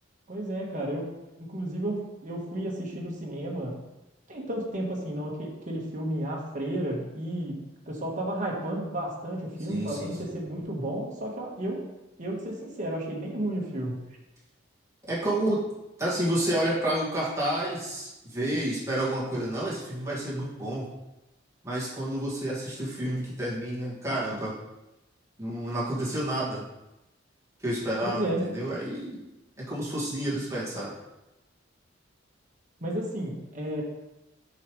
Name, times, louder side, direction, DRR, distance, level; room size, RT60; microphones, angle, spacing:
voice 1, 0.3-1.1 1.4-3.7 4.3-7.5 7.9-11.8 12.2-13.9 28.0-28.4 32.8-33.8, right 1 dB, 40° right, -2 dB, 1.3 m, -32 dB
voice 2, 9.7-10.4 15.1-15.6 16.0-20.9 21.6-24.5 25.4-26.6 27.6-29.2 29.6-30.9, right 1 dB, 15° right, -7 dB, 1.9 m, -30 dB
7.0 x 5.1 x 3.1 m, 0.97 s
head